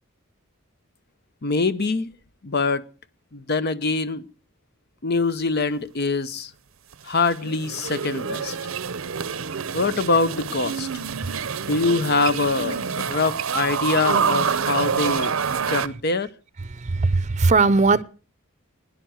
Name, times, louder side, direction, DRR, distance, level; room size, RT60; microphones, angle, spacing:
voice 1, 1.4-2.1 2.4-2.8 3.3-4.2 5.0-6.5 7.0-8.6 9.7-10.9 11.6-15.3 15.7-16.3, left 3 dB, 50° left, 0.8 m, -24 dB
sound 1, 6.9-15.9, right 6 dB, 75° right, 0.7 m, -27 dB
voice 2, 16.8-18.0, right 3 dB, 35° right, 0.7 m, -18 dB
17.0 x 10.5 x 6.3 m
head